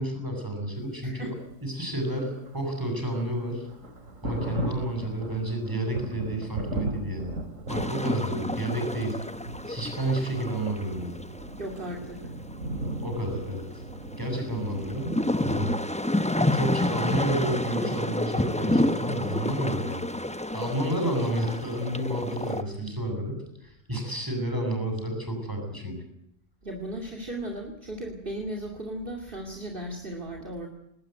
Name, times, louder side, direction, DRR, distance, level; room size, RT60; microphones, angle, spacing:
voice 1, 0.0-1.3 1.6-3.7 4.2-7.3 7.7-9.2 9.6-11.2 13.0-13.6 14.2-15.7 16.5-20.0 20.5-26.0, right 1 dB, 15° right, 3 dB, 7.9 m, -30 dB
voice 2, 1.0-1.3 11.6-12.3 26.6-30.7, right 1 dB, 45° right, 2 dB, 2.8 m, -36 dB
Thunder, 2.3-15.1, right 2 dB, 85° right, 3.0 m, -37 dB
sound 1, 7.7-22.6, left 1 dB, 5° left, 0.7 m, -30 dB
20.0 x 19.5 x 9.3 m, 0.78 s
omnidirectional pair, 1.3 m